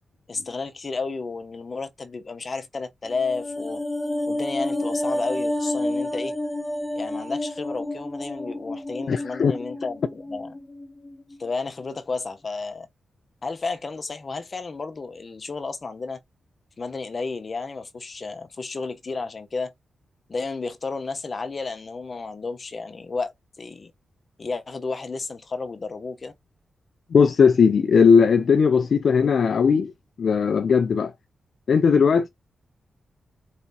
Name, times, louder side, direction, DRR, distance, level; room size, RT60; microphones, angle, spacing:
voice 1, 0.3-3.8 4.3-6.4 7.0-10.5 11.4-12.9 13.4-16.2 16.8-19.7 20.3-23.9 24.4-26.3, left 4 dB, 40° left, 0.9 m, -32 dB
sound 1, 3.0-11.5 11.8-11.9, left 1 dB, 20° left, 1.2 m, -30 dB
voice 2, 9.1-9.5 27.1-29.9 30.2-31.1 31.7-32.3, left 6 dB, 65° left, 0.4 m, -18 dB
4.2 x 3.4 x 2.8 m
cardioid pair, 80°, 0 cm